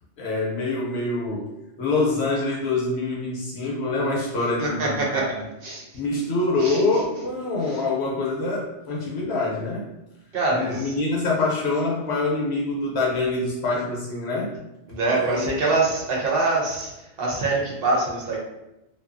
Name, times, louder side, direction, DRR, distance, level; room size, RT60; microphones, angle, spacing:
voice 1, 0.2-1.5 1.8-5.3 5.9-9.9 10.5-14.5 15.1-15.6, left 3 dB, 65° left, -3 dB, 0.9 m, -25 dB
voice 2, 4.6-5.2 5.6-5.8 6.6-6.8 10.3-10.9 14.9-16.9 17.2-18.4, right 3 dB, 60° right, -3 dB, 0.8 m, -24 dB
2.7 x 2.2 x 2.5 m, 0.91 s
omnidirectional pair, 1.2 m